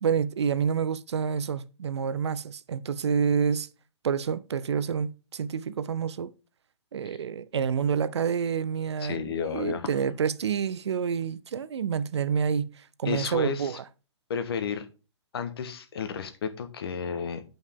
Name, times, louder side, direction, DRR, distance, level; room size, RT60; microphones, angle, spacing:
voice 1, 0.0-3.7 4.0-6.3 6.9-13.8, right 7 dB, 65° right, 0.6 m, -28 dB
voice 2, 9.0-9.9 13.0-13.8 14.3-14.9 15.3-17.4, left 7 dB, 55° left, 1.3 m, -32 dB
8.9 x 5.5 x 3.5 m
figure-of-eight pair, 130°, 15 cm